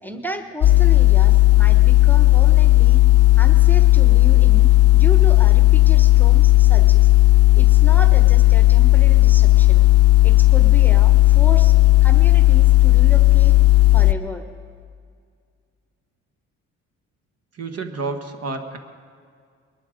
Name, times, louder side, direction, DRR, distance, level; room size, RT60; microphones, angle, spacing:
voice 1, 0.0-3.0 3.4-7.1 7.6-9.9 10.2-11.8 12.0-13.6 13.9-14.5, equal, 5° left, 7 dB, 1.0 m, -33 dB
sound 1, 0.6-14.1, left 17 dB, 55° left, 0.5 m, -13 dB
voice 2, 17.5-18.8, right 3 dB, 55° right, 7 dB, 1.4 m, -30 dB
21.0 x 11.5 x 5.1 m, 2.1 s
cardioid pair, 90°, 30 cm